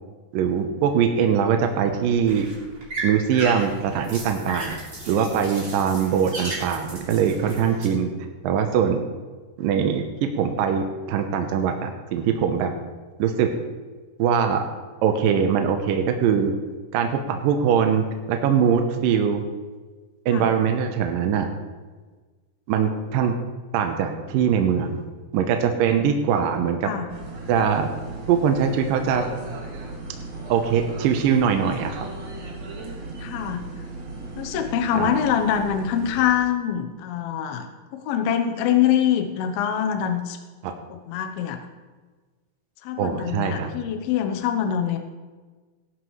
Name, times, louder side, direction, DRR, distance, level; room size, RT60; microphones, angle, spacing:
voice 1, 0.3-2.5 3.0-4.7 5.1-8.1 8.4-9.0 9.6-12.7 13.2-13.5 14.2-14.6 15.0-16.5 16.9-19.4 20.3-21.5 22.7-23.4 23.7-25.0 25.3-26.9 27.5-27.9 28.3-29.3 30.5-32.1 34.9-35.2 40.6-40.7 43.0-43.7, right 7 dB, 75° right, 5 dB, 2.2 m, -22 dB
sound 1, 1.7-7.9, right 2 dB, 30° right, 3.5 m, -35 dB
voice 2, 25.9-26.4 26.8-27.1 33.2-33.7 34.4-37.7 37.9-40.4 40.9-41.6 42.8-45.0, left 9 dB, 75° left, 6 dB, 2.7 m, -24 dB
sound 2, 27.1-36.3, right 2 dB, 45° right, 2.6 m, -36 dB
17.5 x 11.5 x 3.2 m, 1.4 s
omnidirectional pair, 4.7 m